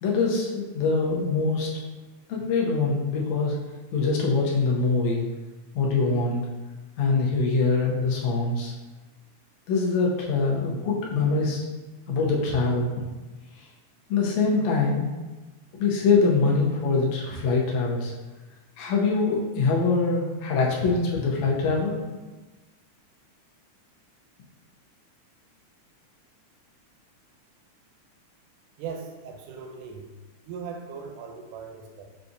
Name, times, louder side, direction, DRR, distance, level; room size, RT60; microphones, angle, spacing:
voice 1, 0.0-1.7 2.3-3.6 3.9-5.3 5.8-6.4 7.0-8.7 9.7-11.7 12.1-12.9 13.6-13.7 14.1-15.1 15.8-18.1 18.8-22.0, left 4 dB, 75° left, -3 dB, 1.8 m, -24 dB
voice 2, 28.8-30.0 30.5-32.1, right 6 dB, 80° right, 3 dB, 2.1 m, -38 dB
6.8 x 2.4 x 2.6 m, 1.2 s
omnidirectional pair, 3.5 m